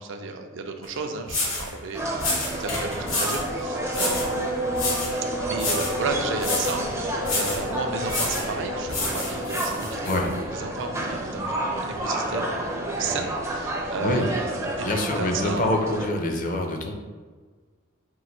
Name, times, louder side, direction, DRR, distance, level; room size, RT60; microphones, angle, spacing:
voice 1, 0.0-4.3 5.3-15.7, right 4 dB, 65° right, 5 dB, 0.5 m, -33 dB
sound 1, 0.8-0.9 1.3-1.7 2.2-3.5 3.9-4.3 4.7-5.2 5.5-6.0 6.4-6.8 7.2-7.7 8.1-8.5 8.9-10.2, left 2 dB, 85° left, 1.1 m, -29 dB
sound 2, 1.9-16.1, right 1 dB, 15° right, 0.4 m, -31 dB
sound 3, 3.0-14.9, equal, 70° left, 0.9 m, -34 dB
voice 2, 14.8-16.9, left 1 dB, 40° left, 3 dB, 0.5 m, -25 dB
3.8 x 2.5 x 4.3 m, 1.4 s
head